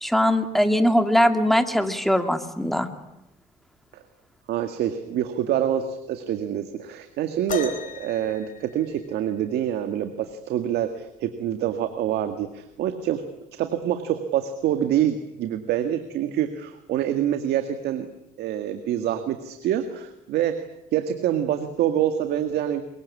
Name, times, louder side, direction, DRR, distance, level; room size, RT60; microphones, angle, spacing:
voice 1, 0.0-2.9, equal, ahead, 7 dB, 2.3 m, -21 dB
voice 2, 4.5-13.2 13.6-18.1 18.4-20.7 20.9-22.8, right 10 dB, 75° right, 8 dB, 1.9 m, -26 dB
sound 1, 7.5-9.4 11.0-11.1 11.9-12.2 13.1-13.2, left 7 dB, 50° left, 3.6 m, -35 dB
24.0 x 22.5 x 8.5 m, 0.87 s
cardioid pair, 110°, 17 cm